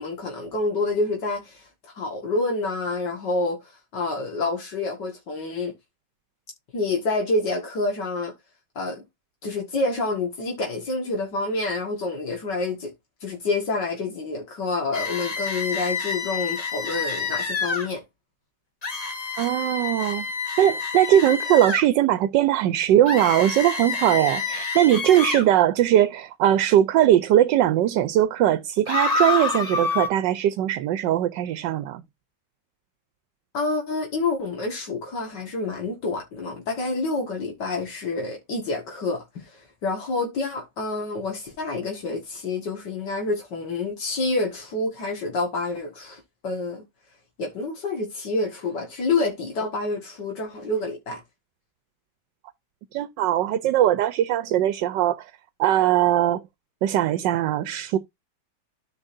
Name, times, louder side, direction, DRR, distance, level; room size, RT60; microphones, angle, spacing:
voice 1, 0.0-5.7 6.7-8.3 8.8-9.0 9.4-12.9 13.2-18.0 33.5-46.8 47.4-51.2, left 3 dB, 75° left, 2.5 m, -28 dB
sound 1, 14.9-17.9 18.8-21.8 23.1-25.5 28.9-30.1, left 4 dB, 25° left, 1.0 m, -28 dB
voice 2, 19.4-20.3 20.6-32.0 52.9-55.3 55.6-56.4 56.8-58.0, right 12 dB, 90° right, 1.3 m, -20 dB
13.5 x 5.3 x 2.6 m
omnidirectional pair, 1.9 m